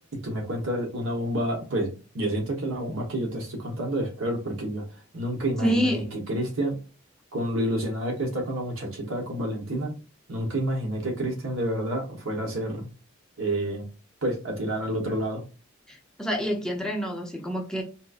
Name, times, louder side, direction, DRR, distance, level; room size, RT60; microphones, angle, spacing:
voice 1, 0.2-4.8 5.1-6.7 7.3-9.9 10.3-12.9 13.4-13.9 14.2-15.4, right 1 dB, 75° right, 2 dB, 1.0 m, -29 dB
voice 2, 5.6-6.1 15.9-17.8, equal, 5° left, 0 dB, 0.5 m, -27 dB
3.9 x 2.4 x 2.4 m, 0.35 s
head